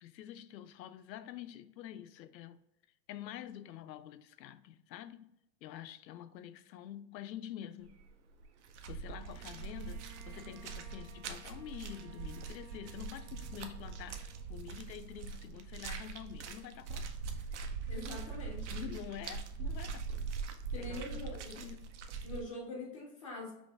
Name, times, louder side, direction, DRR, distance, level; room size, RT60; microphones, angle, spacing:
voice 1, 0.0-2.6 3.1-5.3 5.6-8.0 8.9-17.1 18.6-20.3 20.8-21.9, left 11 dB, 90° left, 0.6 m, -47 dB
sound 1, 7.9-8.1 8.4-22.4, right 5 dB, 45° right, 0.5 m, -42 dB
Bowed string instrument, 9.2-14.9, right 3 dB, 65° right, 0.9 m, -58 dB
voice 2, 17.9-18.8 20.7-21.6 22.2-23.5, left 2 dB, 20° left, 0.5 m, -44 dB
5.5 x 2.6 x 3.3 m
supercardioid pair, 165°, 50 cm